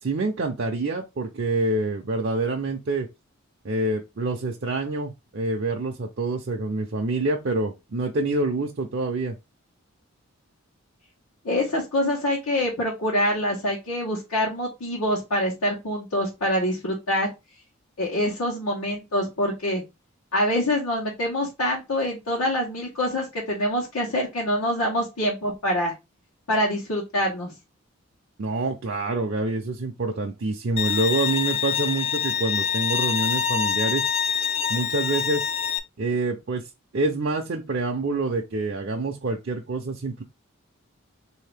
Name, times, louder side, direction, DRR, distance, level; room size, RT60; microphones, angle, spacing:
voice 1, 0.0-3.1 3.6-9.4 28.4-34.1 34.7-35.4 36.0-36.6 36.9-40.2, right 2 dB, 50° right, 0.5 m, -26 dB
voice 2, 11.4-17.3 18.0-19.8 20.3-25.9 26.5-27.5, equal, 85° left, 1.2 m, -25 dB
Bowed string instrument, 30.8-35.8, left 8 dB, 30° left, 0.3 m, -25 dB
4.0 x 2.7 x 3.4 m
head